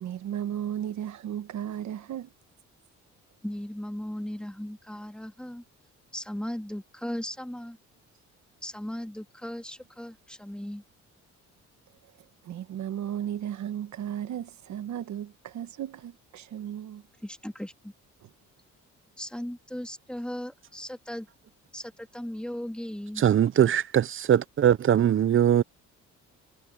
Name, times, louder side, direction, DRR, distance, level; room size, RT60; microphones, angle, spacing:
voice 1, 0.0-2.3 12.4-17.0, right 10 dB, 70° right, 1.2 m, -35 dB
voice 2, 3.4-5.6 6.1-7.8 8.6-10.8 17.2-17.9 19.2-21.3 21.7-23.2, equal, 5° left, 2.3 m, -37 dB
voice 3, 23.2-25.6, right 10 dB, 45° right, 0.6 m, -21 dB
cardioid pair, 90°, 30 cm